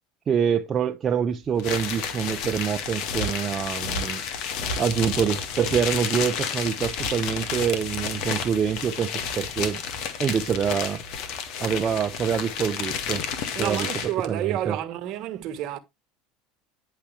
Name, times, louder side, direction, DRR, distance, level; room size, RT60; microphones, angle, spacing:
voice 1, 0.3-4.2 4.8-9.8 10.2-11.0 11.6-13.2 13.5-13.9 14.3-14.8, right 7 dB, 35° right, 0.7 m, -26 dB
sound 1, 1.6-14.3, left 6 dB, 60° left, 1.7 m, -31 dB
voice 2, 13.6-15.8, right 12 dB, 55° right, 1.3 m, -29 dB
10.0 x 5.9 x 3.3 m
hypercardioid pair, 75°, 0 cm